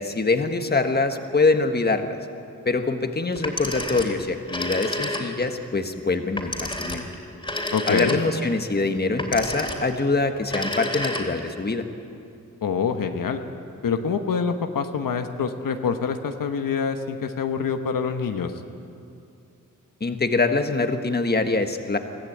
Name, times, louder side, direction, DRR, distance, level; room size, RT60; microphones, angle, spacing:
voice 1, 0.0-2.2 2.6-7.0 7.9-11.8 20.0-22.0, left 3 dB, 30° left, 6 dB, 1.5 m, -24 dB
Telephone, 3.4-5.6 6.4-8.5 9.2-10.0 10.4-11.6, left 1 dB, 15° left, 3.2 m, -30 dB
voice 2, 7.7-8.2 12.6-13.4 13.8-18.5, left 6 dB, 85° left, 6 dB, 1.2 m, -25 dB
22.5 x 15.0 x 9.0 m, 2.5 s
wide cardioid pair, 85°, 32 cm